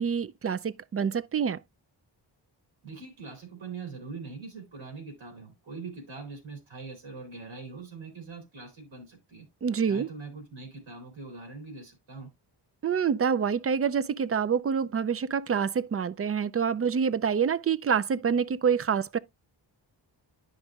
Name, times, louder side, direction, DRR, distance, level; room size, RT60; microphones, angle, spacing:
voice 1, 0.0-1.6 9.6-10.1 12.8-19.2, right 6 dB, 35° right, 0.4 m, -27 dB
voice 2, 2.8-9.5 9.9-12.3, right 4 dB, 90° right, 2.9 m, -42 dB
10.5 x 5.2 x 2.3 m
cardioid pair, 80°, 46 cm